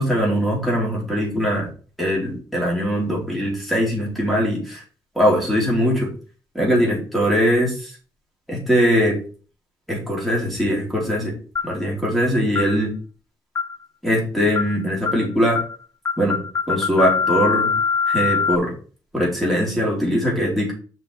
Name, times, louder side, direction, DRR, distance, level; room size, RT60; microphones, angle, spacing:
voice 1, 0.0-1.7 2.0-4.8 5.1-6.1 6.5-7.9 8.5-9.2 9.9-11.3 11.6-12.9 14.0-15.6 16.2-16.4 16.7-17.7 18.1-18.7 19.1-20.7, equal, ahead, -4 dB, 4.1 m, -21 dB
sound 1, 11.6-11.8 12.6-12.8 13.6-13.8 14.6-14.8 15.1-15.3 15.6-15.8 16.1-18.6, left 6 dB, 35° left, 0.3 m, -23 dB
6.1 x 5.9 x 5.0 m, 0.38 s
wide cardioid pair, 145°, 9 cm